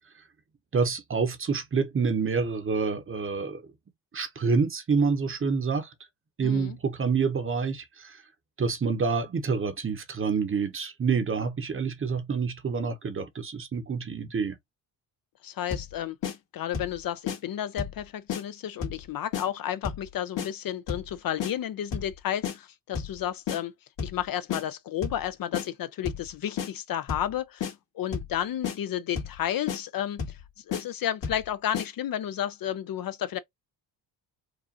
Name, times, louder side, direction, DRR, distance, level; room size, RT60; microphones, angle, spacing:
voice 1, 0.7-3.6 4.1-5.9 6.4-8.2 8.6-14.6, right 5 dB, 30° right, 0.8 m, -27 dB
voice 2, 6.4-6.8 15.4-16.2 16.5-23.7 24.0-30.4 30.7-33.4, left 11 dB, 50° left, 0.5 m, -32 dB
sound 1, 15.7-15.9 16.2-16.4 16.7-17.0 17.3-17.4 17.8-18.0 18.3-18.4 18.8-19.0 19.3-19.5 19.8-20.1 20.4-20.5 20.9-21.1 21.4-21.5 21.9-22.1 22.4-22.6 22.9-23.2 23.5-23.6 24.0-24.2 24.5-24.6 25.0-25.2 25.5-25.7 26.1-26.3 26.6-26.7 27.1-27.3 27.6-27.7 28.1-28.3 28.6-28.8 29.2-29.4 29.7-29.8 30.2-30.4 30.7-30.8 31.2-31.4 31.7-31.9, left 7 dB, 70° left, 1.8 m, -31 dB
4.7 x 2.5 x 2.8 m
cardioid pair, 100°, 45 cm